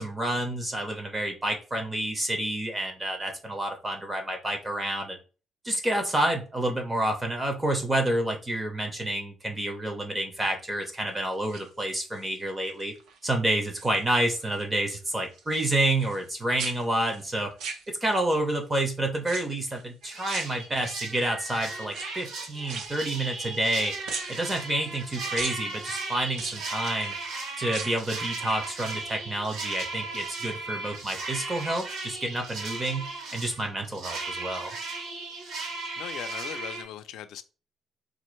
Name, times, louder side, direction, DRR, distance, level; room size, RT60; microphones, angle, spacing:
voice 1, 0.0-5.2 5.6-12.9 13.2-17.5 17.9-23.9 24.3-27.1 27.6-34.8, right 1 dB, 15° right, 0.5 m, -29 dB
sound 1, 11.3-12.3 12.8-13.2 13.5-14.5 14.8-16.3 16.6-18.4 19.2-19.8 20.2-21.1 21.8-23.8 24.1-25.0 25.4-25.6 26.3-27.1 27.6-28.1 28.4-28.5, right 5 dB, 90° right, 0.8 m, -39 dB
sound 2, 20.0-36.8, right 3 dB, 65° right, 1.0 m, -36 dB
voice 2, 36.0-37.4, left 11 dB, 85° left, 0.4 m, -39 dB
4.2 x 2.5 x 3.0 m
cardioid pair, 175°, 0 cm